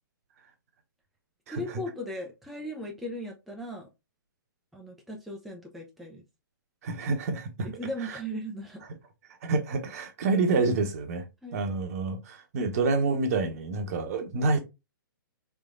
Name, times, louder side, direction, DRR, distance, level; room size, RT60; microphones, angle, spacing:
voice 1, 1.5-3.9 4.7-6.3 7.6-8.9 11.4-11.6, equal, ahead, 0.5 m, -37 dB
voice 2, 6.8-7.7 9.4-11.2 11.5-14.6, right 3 dB, 45° right, 0.9 m, -27 dB
3.4 x 3.3 x 2.5 m
figure-of-eight pair, 125°, 12 cm